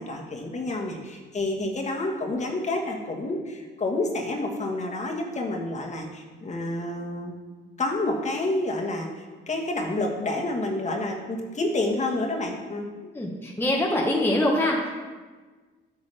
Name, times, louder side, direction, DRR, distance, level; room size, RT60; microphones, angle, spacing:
voice 1, 0.0-7.4 7.8-12.9, left 2 dB, 35° left, 1 dB, 1.4 m, -29 dB
voice 2, 13.1-14.9, left 1 dB, 10° left, -2 dB, 1.0 m, -24 dB
8.5 x 6.9 x 3.4 m, 1.4 s
cardioid pair, 90°, 20 cm